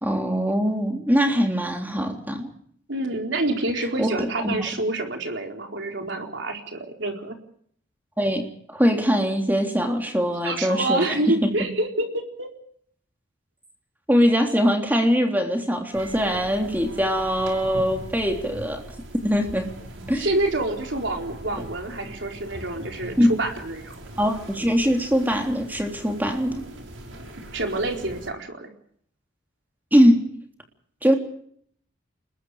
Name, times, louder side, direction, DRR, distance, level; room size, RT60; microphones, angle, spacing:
voice 1, 0.0-2.5 4.0-4.7 8.2-11.7 14.1-18.8 19.2-19.7 20.1-20.3 23.2-23.3 24.2-26.6 29.9-30.2 31.0-31.1, equal, 10° right, 3 dB, 3.5 m, -22 dB
voice 2, 2.9-7.4 10.4-12.5 20.1-23.9 27.5-28.7, right 2 dB, 65° right, 3 dB, 4.4 m, -27 dB
sound 1, 15.9-28.3, right 1 dB, 85° right, 5.7 m, -40 dB
29.5 x 21.5 x 5.1 m, 0.65 s
head